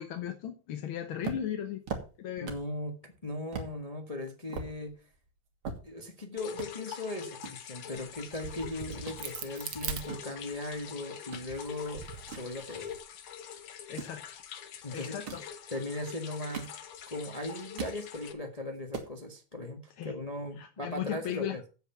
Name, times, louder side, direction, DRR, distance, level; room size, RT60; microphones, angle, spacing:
voice 1, 0.0-1.8 2.2-2.5 13.9-14.2 14.9-15.4 20.0-20.1 20.6-21.6, left 10 dB, 70° left, 5 dB, 1.8 m, -36 dB
sound 1, 1.2-2.8 3.1-3.2 3.5-3.7 4.2-6.2 6.5-6.7 7.4-8.6 8.8-9.2 9.8-11.5 11.9-13.2 13.8-14.2 15.0-15.5 16.2-17.1 17.5-18.0 18.4-18.5 18.7-19.1, right 5 dB, 75° right, 2.6 m, -41 dB
voice 2, 2.4-5.0 5.8-12.0 12.3-12.9 14.8-15.1 15.7-16.8 17.1-21.7, left 2 dB, 20° left, 3 dB, 1.2 m, -38 dB
sound 2, 6.4-18.3, left 8 dB, 90° left, 2.0 m, -45 dB
Crack, 8.2-10.8 11.3-13.0, right 8 dB, 90° right, 2.1 m, -42 dB
8.3 x 8.0 x 5.7 m, 0.34 s
omnidirectional pair, 2.4 m